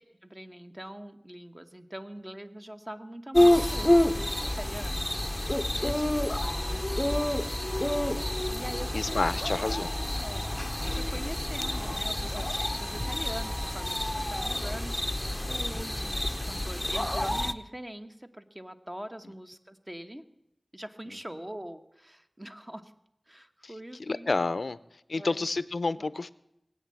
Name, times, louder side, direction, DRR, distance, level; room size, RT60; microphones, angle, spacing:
voice 1, 0.2-5.0 5.8-6.0 6.6-7.5 8.5-9.3 9.8-9.9 10.2-20.2 20.7-22.9 23.3-24.3 25.1-25.5 25.9-26.0, right 1 dB, 20° right, 7 dB, 1.2 m, -43 dB
sound 1, 3.3-17.5, left 1 dB, 20° left, 0.7 m, -28 dB
voice 2, 5.7-6.3 8.9-9.9 24.0-24.8 25.1-26.3, left 3 dB, 85° left, 16 dB, 0.5 m, -30 dB
19.5 x 8.6 x 7.5 m, 0.81 s
wide cardioid pair, 45°, 0 cm